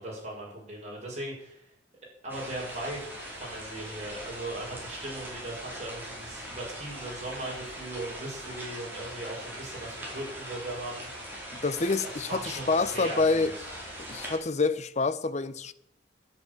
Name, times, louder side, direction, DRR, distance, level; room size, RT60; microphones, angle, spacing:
voice 1, 0.0-1.7 2.2-11.4 12.0-13.8, right 1 dB, 40° right, 6.3 m, -39 dB
sound 1, 2.3-14.4, right 1 dB, 10° right, 4.8 m, -41 dB
voice 2, 11.5-13.5 14.0-15.7, left 3 dB, 40° left, 0.7 m, -27 dB
10.5 x 9.4 x 8.6 m
head